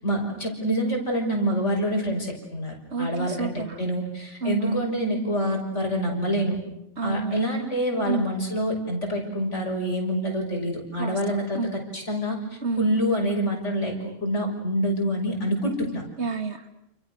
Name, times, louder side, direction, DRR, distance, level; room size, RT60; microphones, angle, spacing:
voice 1, 0.0-6.6 7.0-16.0, equal, 70° left, 2 dB, 6.5 m, -26 dB
voice 2, 2.9-3.8 4.4-4.8 7.0-7.5 8.0-8.3 11.0-11.7 12.6-12.9 16.2-16.7, right 4 dB, 65° right, 8 dB, 2.5 m, -29 dB
29.5 x 29.0 x 6.5 m, 0.76 s
omnidirectional pair, 1.3 m